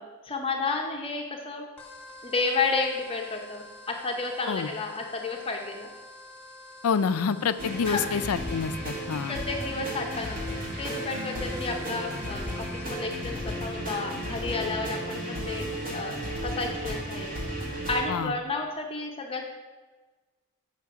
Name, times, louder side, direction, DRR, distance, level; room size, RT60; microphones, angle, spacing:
voice 1, 0.0-1.7 2.2-5.9 7.9-8.2 9.3-16.2 16.4-19.4, left 3 dB, 25° left, 2 dB, 0.7 m, -32 dB
sound 1, 1.8-13.2, left 2 dB, 5° left, 1.6 m, -48 dB
voice 2, 6.8-9.4 18.1-18.3, left 6 dB, 85° left, 12 dB, 0.4 m, -27 dB
sound 2, 7.6-18.0, equal, 40° right, 1.7 m, -34 dB
7.4 x 5.8 x 4.7 m, 1.3 s
head